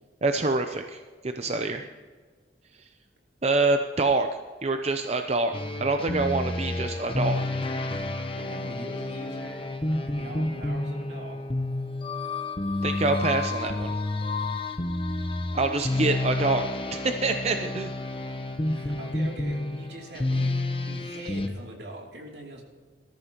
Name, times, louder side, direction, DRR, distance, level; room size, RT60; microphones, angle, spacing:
voice 1, 0.2-1.9 3.4-4.3 4.6-5.5 5.8-7.4 12.8-13.9 15.5-17.9, right 3 dB, 35° right, 6 dB, 0.6 m, -26 dB
voice 2, 1.4-1.8 8.4-9.7 10.2-11.4 18.7-22.6, right 1 dB, 75° right, -1 dB, 3.0 m, -42 dB
sound 1, 5.5-21.5, left 2 dB, 30° left, 1.0 m, -30 dB
20.0 x 13.5 x 3.0 m, 1.5 s
head